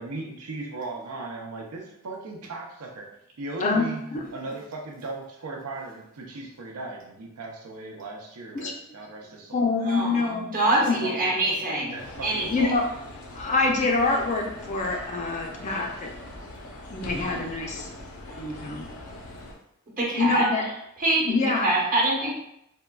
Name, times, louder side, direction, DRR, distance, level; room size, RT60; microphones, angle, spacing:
voice 1, 0.0-3.1 3.4-4.0 4.3-9.9 10.7-11.5 11.9-12.8, right 2 dB, 85° right, 0 dB, 0.6 m, -37 dB
voice 2, 3.6-4.2 8.5-8.7 9.5-11.1 12.5-12.8 13.3-16.1 16.9-17.9 18.3-18.9 20.2-20.6 21.2-21.7, left 3 dB, 35° left, 1 dB, 0.4 m, -26 dB
voice 3, 9.9-12.0 12.2-12.7 20.0-20.5 21.0-21.3 21.6-22.3, right 2 dB, 40° right, -4 dB, 0.8 m, -24 dB
sound 1, 12.0-19.5, left 1 dB, 85° left, 0.6 m, -41 dB
3.6 x 2.2 x 2.2 m, 0.77 s
head